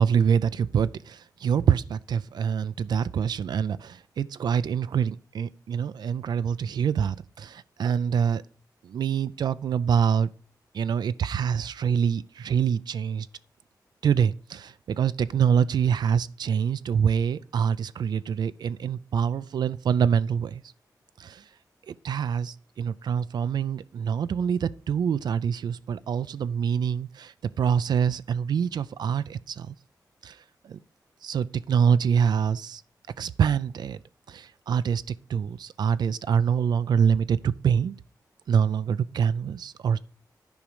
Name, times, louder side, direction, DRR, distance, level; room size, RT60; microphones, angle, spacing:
voice 1, 0.0-8.4 8.9-10.3 10.7-13.3 14.0-20.6 21.2-21.4 21.9-29.7 30.2-30.3 30.7-30.8 31.2-32.8 33.2-34.0 34.3-37.9 38.5-40.0, right 7 dB, 80° right, 0.4 m, -25 dB
10.5 x 5.2 x 4.6 m
wide cardioid pair, 160°, 7 cm